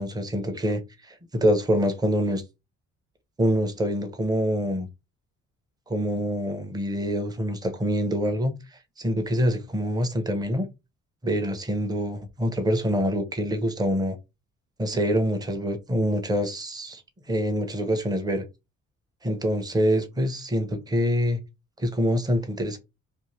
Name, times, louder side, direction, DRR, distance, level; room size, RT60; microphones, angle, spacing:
voice 1, 0.0-2.4 3.4-4.9 5.9-10.7 11.2-14.2 14.8-17.0 17.3-18.5 19.2-21.4 21.8-22.8, equal, 15° right, 0.7 m, -25 dB
2.6 x 2.5 x 3.1 m
cardioid pair, 90°, 30 cm